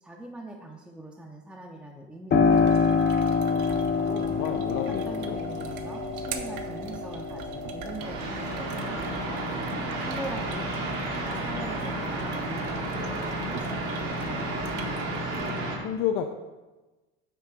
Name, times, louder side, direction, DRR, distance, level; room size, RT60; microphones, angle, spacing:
voice 1, 0.0-3.1 3.5-4.3 4.9-9.4 10.0-10.7 11.2-14.8, right 1 dB, 5° right, -1 dB, 0.5 m, -42 dB
Piano, 2.3-10.7 11.2-12.2, left 5 dB, 35° left, 0.8 m, -27 dB
sound 1, 2.5-15.6, right 7 dB, 70° right, 0.7 m, -41 dB
voice 2, 4.2-5.4 15.8-16.3, left 9 dB, 75° left, 4 dB, 0.5 m, -30 dB
sound 2, 8.0-15.8, right 1 dB, 85° right, 1.7 m, -32 dB
6.0 x 3.7 x 4.7 m, 1.2 s
supercardioid pair, 105°, 32 cm